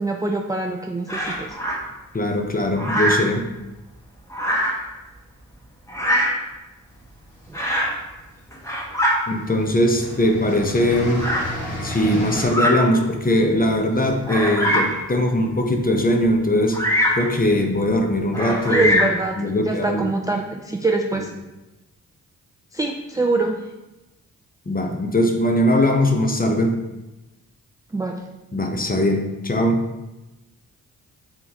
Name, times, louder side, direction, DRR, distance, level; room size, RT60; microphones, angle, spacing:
voice 1, 0.0-1.6 7.5-7.6 18.7-21.3 22.7-23.6 27.9-28.2, right 3 dB, 10° right, 2 dB, 0.4 m, -24 dB
Bird vocalization bird call bird song, 1.1-1.8 2.8-3.3 4.3-4.8 5.9-6.4 7.5-8.0 8.5-9.2 10.0-10.1 11.2-11.5 12.4-12.8 13.4-13.5 14.2-15.0 16.7-17.3 18.3-19.2, equal, 10° left, 1.4 m, -22 dB
voice 2, 2.1-3.4 9.3-11.2 11.8-16.8 17.1-18.9 19.4-20.0 24.7-26.8 28.5-29.8, left 1 dB, 25° left, 3 dB, 0.8 m, -20 dB
sound 1, 7.1-7.9 8.8-9.0 9.3-12.5, equal, 85° left, 1.3 m, -32 dB
4.0 x 3.7 x 3.0 m, 1.0 s
supercardioid pair, 40°, 36 cm